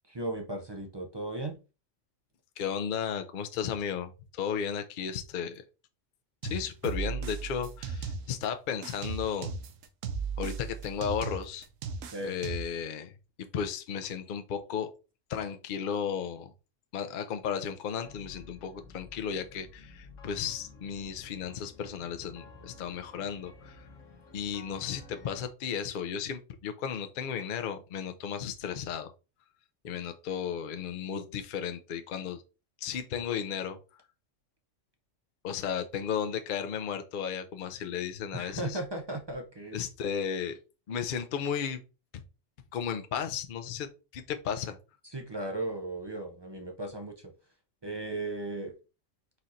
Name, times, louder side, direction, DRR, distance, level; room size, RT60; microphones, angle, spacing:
voice 1, 0.1-1.6 12.1-12.3 38.3-39.8 45.1-47.1 47.8-48.7, right 2 dB, 45° right, 0.3 m, -36 dB
voice 2, 2.6-5.6 6.4-9.6 10.4-11.7 12.2-13.1 13.4-14.9 15.3-16.5 16.9-23.9 24.3-29.1 29.8-32.4 32.8-33.8 35.4-38.8 39.7-40.6 40.9-41.8 42.7-44.8, left 7 dB, 55° left, 0.6 m, -34 dB
sound 1, 6.4-8.5 8.8-12.8, right 5 dB, 90° right, 1.0 m, -36 dB
sound 2, 18.0-25.4, left 3 dB, 85° left, 1.2 m, -52 dB
4.3 x 2.5 x 4.0 m
omnidirectional pair, 1.3 m